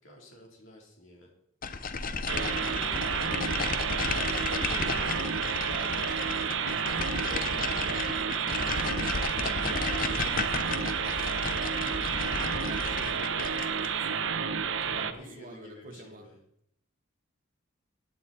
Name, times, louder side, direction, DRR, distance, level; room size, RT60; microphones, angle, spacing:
voice 1, 0.0-1.3 12.4-13.3 14.8-16.3, left 1 dB, 65° left, 0 dB, 3.9 m, -51 dB
sound 1, 1.6-14.0, left 4 dB, 40° left, 0.8 m, -34 dB
voice 2, 2.1-3.0 3.7-11.6 12.5-14.2 14.8-16.3, right 2 dB, 40° right, 2 dB, 1.6 m, -48 dB
sound 2, 2.3-15.1, right 6 dB, 60° right, 0.9 m, -30 dB
16.5 x 9.2 x 4.4 m, 0.72 s
head